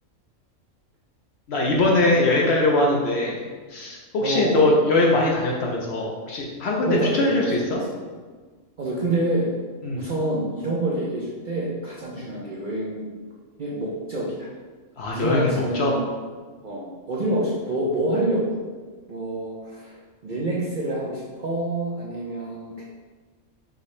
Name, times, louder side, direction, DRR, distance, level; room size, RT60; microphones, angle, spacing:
voice 1, 1.5-7.8 9.8-10.0 12.2-12.3 15.0-15.9, left 2 dB, 60° left, -2 dB, 0.8 m, -22 dB
voice 2, 4.2-4.9 6.8-8.0 8.8-9.5 9.9-13.1 13.6-14.5 15.1-16.0 16.6-18.6 19.1-22.8, right 1 dB, 50° right, -6 dB, 0.6 m, -27 dB
4.9 x 2.7 x 3.1 m, 1.4 s
omnidirectional pair, 1.4 m